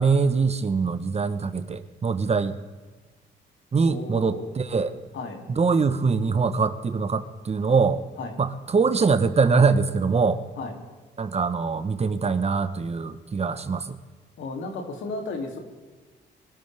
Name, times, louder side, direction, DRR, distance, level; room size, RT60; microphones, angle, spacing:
voice 1, 0.0-2.6 3.7-5.1 5.5-8.0 8.4-10.4 11.2-13.9, right 5 dB, 30° right, 11 dB, 1.0 m, -23 dB
voice 2, 3.8-4.5 5.1-5.4 8.2-8.3 10.6-10.7 14.4-15.6, left 3 dB, 75° left, 2 dB, 2.8 m, -34 dB
23.5 x 12.5 x 3.5 m, 1.4 s
cardioid pair, 90°, 20 cm